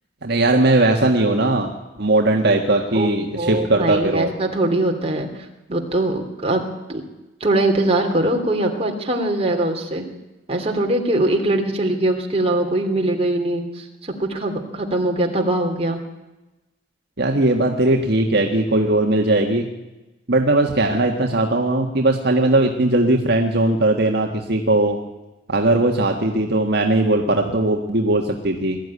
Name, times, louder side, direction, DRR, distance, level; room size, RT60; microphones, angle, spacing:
voice 1, 0.2-1.7 2.0-4.3 17.2-19.7 20.3-25.0 25.5-28.8, right 2 dB, 60° right, 2 dB, 1.7 m, -19 dB
voice 2, 3.3-5.3 5.7-6.6 6.9-7.0 7.4-10.1 10.5-16.0, right 1 dB, 35° right, 2 dB, 3.0 m, -22 dB
21.5 x 13.5 x 9.7 m, 1.1 s
head